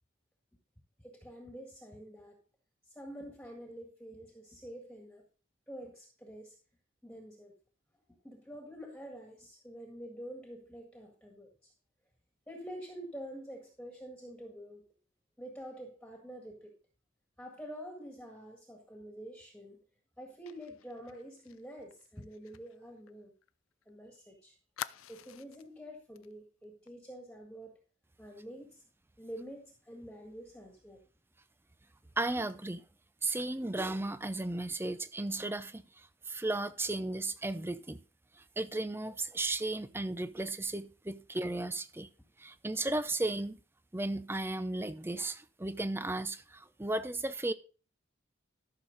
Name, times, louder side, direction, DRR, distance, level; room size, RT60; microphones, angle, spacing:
voice 1, 1.0-2.4 2.9-5.2 5.7-6.5 7.0-7.6 8.2-11.7 12.5-14.8 15.4-16.7 17.4-19.8 20.2-23.3 23.9-24.6 25.1-27.8 28.2-28.8 29.2-31.0, equal, 5° left, 1.8 m, -47 dB
Fire, 20.5-23.9 24.2-24.3 24.8-25.7 26.1-26.3 26.6-26.9, left 10 dB, 80° left, 0.4 m, -47 dB
voice 2, 32.2-32.8 33.2-35.8 36.3-38.0 38.6-42.1 42.4-43.6 43.9-47.5, right 2 dB, 10° right, 0.5 m, -35 dB
13.5 x 6.4 x 4.0 m
head